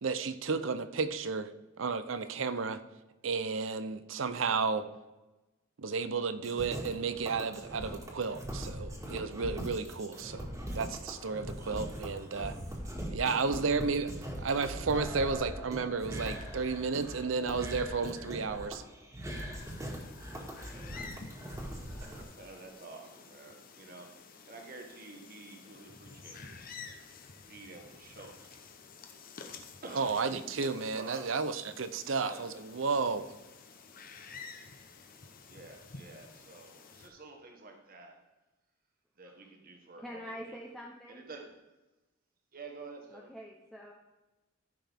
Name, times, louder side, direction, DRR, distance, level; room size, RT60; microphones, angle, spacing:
voice 1, 0.0-1.5 1.8-2.8 3.2-4.9 5.8-10.5 10.7-12.6 13.1-18.8 30.0-33.3, right 4 dB, 75° right, 12 dB, 0.6 m, -32 dB
sound 1, 6.4-22.2, equal, 15° right, 1.8 m, -41 dB
sound 2, 19.6-37.1, left 5 dB, 45° left, 0.9 m, -51 dB
voice 2, 21.8-26.8 27.4-28.8 29.1-31.3 32.2-32.5 35.5-38.2 39.2-40.6 41.1-41.5 42.5-43.3, right 3 dB, 45° right, 3 dB, 1.3 m, -50 dB
voice 3, 40.0-41.3 43.1-43.9, equal, ahead, -3 dB, 0.7 m, -45 dB
14.5 x 5.9 x 3.5 m, 1.1 s
head